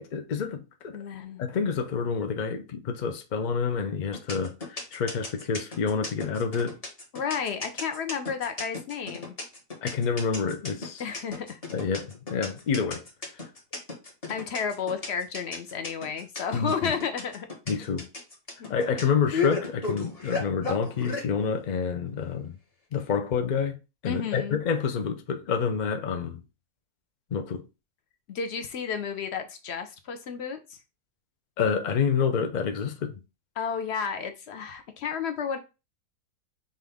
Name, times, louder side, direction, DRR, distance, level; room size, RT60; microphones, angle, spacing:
voice 1, 0.0-1.0 1.4-6.8 9.8-11.0 11.7-13.0 16.5-16.7 17.7-18.1 18.7-22.5 22.9-23.8 24.0-26.4 27.3-27.6 31.6-33.2, left 6 dB, 85° left, 0.4 m, -28 dB
voice 2, 0.9-1.4 7.1-9.3 11.0-11.6 14.3-17.8 18.6-18.9 24.0-24.6 28.3-30.8 33.6-35.6, left 6 dB, 55° left, 0.8 m, -32 dB
sound 1, 4.1-21.3, left 4 dB, 25° left, 1.0 m, -34 dB
5.7 x 2.5 x 3.4 m
omnidirectional pair, 1.6 m